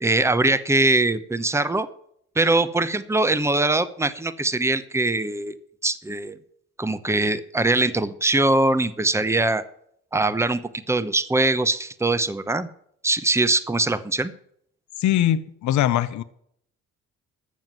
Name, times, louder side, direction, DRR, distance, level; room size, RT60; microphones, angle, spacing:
voice 1, 0.0-1.9 2.4-5.5 5.8-6.4 6.8-9.6 10.1-10.6 10.9-12.7 13.0-14.3, right 2 dB, 10° right, 0.9 m, -22 dB
voice 2, 15.0-16.2, left 12 dB, 70° left, 0.8 m, -21 dB
13.5 x 7.4 x 7.6 m
cardioid pair, 90°, 30 cm